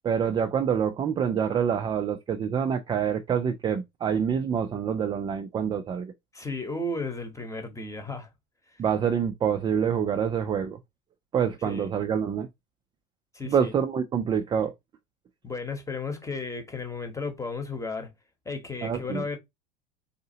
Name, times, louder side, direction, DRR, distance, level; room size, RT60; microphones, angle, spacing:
voice 1, 0.0-6.1 8.8-10.8 11.3-12.5 13.4-14.7 18.8-19.2, right 7 dB, 15° right, 0.3 m, -26 dB
voice 2, 6.3-8.3 11.6-11.9 13.3-13.7 15.4-18.1 18.4-19.4, left 3 dB, 10° left, 1.0 m, -34 dB
4.0 x 2.7 x 2.7 m
hypercardioid pair, 80°, 31 cm